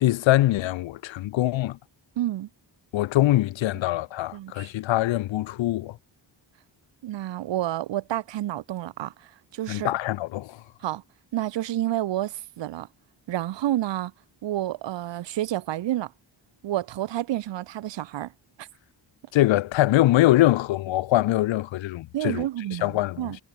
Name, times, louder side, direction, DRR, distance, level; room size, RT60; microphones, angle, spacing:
voice 1, 0.0-1.8 2.9-6.0 9.7-10.6 19.3-22.5 22.8-23.3, left 15 dB, 90° left, 0.6 m, -23 dB
voice 2, 2.2-2.5 4.3-4.7 7.0-9.9 10.8-11.0 11.3-12.9 13.3-14.1 14.4-16.1 16.6-18.3 18.6-18.7 22.1-23.4, right 13 dB, 70° right, 0.6 m, -29 dB
wide cardioid pair, 110°, 45 cm